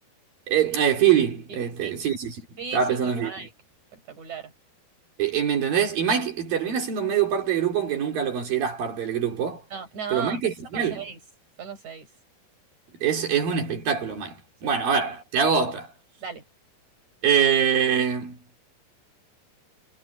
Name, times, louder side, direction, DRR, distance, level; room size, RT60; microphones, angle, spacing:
voice 1, 0.5-2.4 2.7-3.5 5.2-9.6 10.1-11.0 13.0-15.9 17.2-18.4, right 8 dB, 65° right, 5.3 m, -24 dB
voice 2, 1.5-2.0 2.6-3.5 3.9-4.5 9.7-10.4 10.7-11.2 11.6-12.1 14.6-14.8 16.2-16.4, right 6 dB, 50° right, 6.5 m, -36 dB
omnidirectional pair, 4.3 m